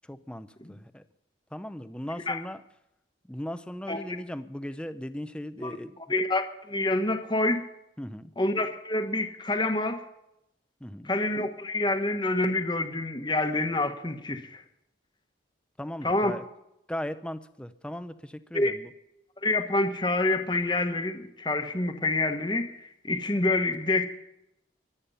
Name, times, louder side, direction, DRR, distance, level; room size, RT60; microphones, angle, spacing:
voice 1, 0.1-1.0 1.5-2.6 3.3-5.9 8.0-8.3 10.8-11.1 15.8-16.4 16.9-18.9, equal, 5° left, 0.7 m, -37 dB
voice 2, 6.1-7.6 8.4-10.0 11.0-14.6 16.0-16.3 18.5-18.7 19.4-24.1, left 2 dB, 25° left, 1.2 m, -27 dB
23.0 x 8.7 x 5.6 m
head